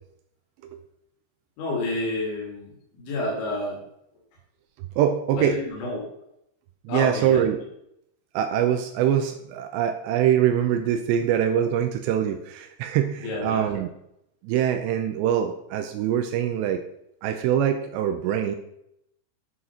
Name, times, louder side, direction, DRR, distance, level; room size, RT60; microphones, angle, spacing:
voice 1, 1.6-3.8 5.3-6.0 6.9-7.4 13.2-13.7, left 1 dB, 75° left, -3 dB, 4.7 m, -29 dB
voice 2, 5.0-5.5 6.9-7.6 8.3-13.9 14.4-16.8 17.2-18.6, right 9 dB, 85° right, 7 dB, 2.7 m, -23 dB
9.2 x 6.4 x 5.7 m, 0.78 s
omnidirectional pair, 5.4 m